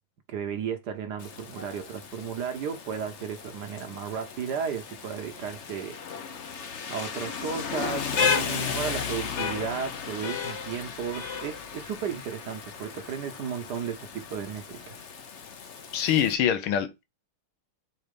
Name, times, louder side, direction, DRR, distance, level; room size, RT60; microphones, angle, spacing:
voice 1, 0.3-6.0 6.9-15.0, right 7 dB, 65° right, 1.1 m, -34 dB
Rain, 1.2-16.3, left 6 dB, 70° left, 0.6 m, -34 dB
voice 2, 15.9-17.0, left 9 dB, 85° left, 1.7 m, -24 dB
5.5 x 4.0 x 5.2 m
omnidirectional pair, 2.3 m